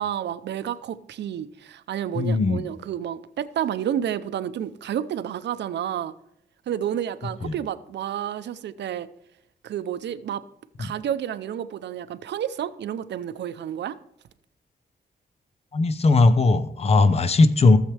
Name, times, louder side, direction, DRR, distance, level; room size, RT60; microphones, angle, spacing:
voice 1, 0.0-6.1 6.7-9.1 9.6-10.4 10.8-14.0, right 10 dB, 90° right, 0.6 m, -30 dB
voice 2, 2.2-2.6 7.4-7.5 10.8-10.9 15.7-17.8, left 3 dB, 35° left, 0.7 m, -18 dB
16.0 x 7.4 x 3.3 m
wide cardioid pair, 150°, 18 cm